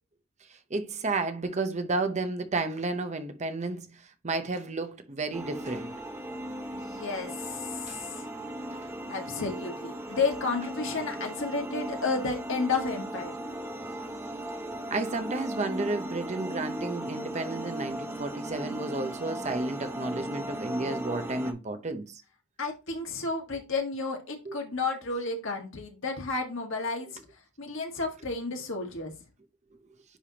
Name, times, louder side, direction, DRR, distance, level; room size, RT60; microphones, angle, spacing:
voice 1, 0.7-5.9 7.9-8.0 8.7-8.9 14.9-22.2 24.5-24.6, right 3 dB, 30° right, 0.7 m, -32 dB
sound 1, 5.3-21.5, right 1 dB, 10° right, 1.1 m, -37 dB
voice 2, 6.7-8.2 9.1-13.3 22.6-27.2 27.6-29.1, left 4 dB, 60° left, 1.6 m, -32 dB
10.0 x 3.4 x 2.8 m
head